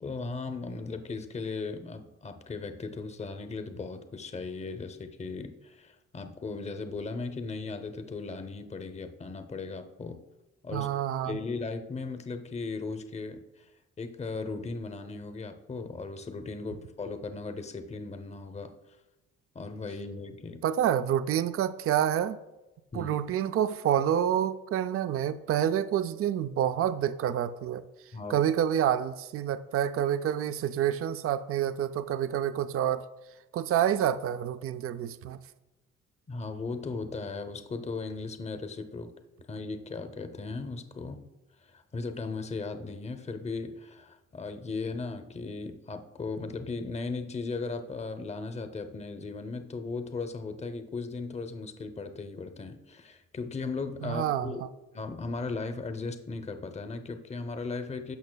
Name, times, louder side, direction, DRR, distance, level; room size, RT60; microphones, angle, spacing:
voice 1, 0.0-10.2 10.6-10.9 11.2-13.7 14.0-18.7 19.5-20.6 22.9-23.2 28.1-28.4 36.3-39.1 39.5-41.2 41.7-54.6 54.9-58.2, left 3 dB, 20° left, 8 dB, 0.7 m, -37 dB
voice 2, 10.7-11.4 20.6-22.4 22.9-27.8 28.3-33.0 33.5-35.4 54.0-54.7, right 10 dB, 50° right, 12 dB, 0.4 m, -28 dB
13.0 x 5.4 x 2.2 m, 1.0 s
cardioid pair, 90°, 30 cm